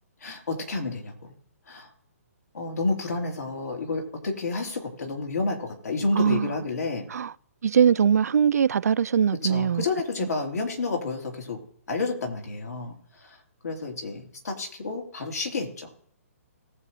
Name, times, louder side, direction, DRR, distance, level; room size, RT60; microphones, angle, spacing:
voice 1, 0.2-1.3 1.7-1.9 2.5-7.0 9.4-11.6 11.9-13.0 13.2-13.4 13.6-15.9, left 3 dB, 85° left, 3.0 m, -30 dB
voice 2, 6.2-6.5 7.1-7.3 7.6-9.8 10.2-10.3, right 7 dB, 80° right, 0.4 m, -21 dB
19.0 x 7.7 x 3.1 m
hypercardioid pair, 150°, 8 cm